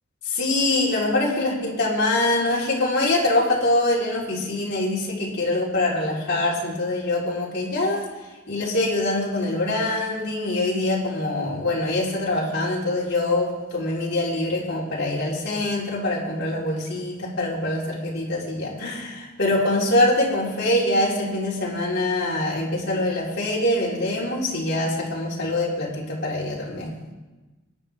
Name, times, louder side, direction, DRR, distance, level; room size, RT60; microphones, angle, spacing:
voice 1, 0.3-8.1 8.5-26.9, left 2 dB, 55° left, -5 dB, 4.2 m, -24 dB
23.5 x 11.0 x 3.6 m, 1.1 s
head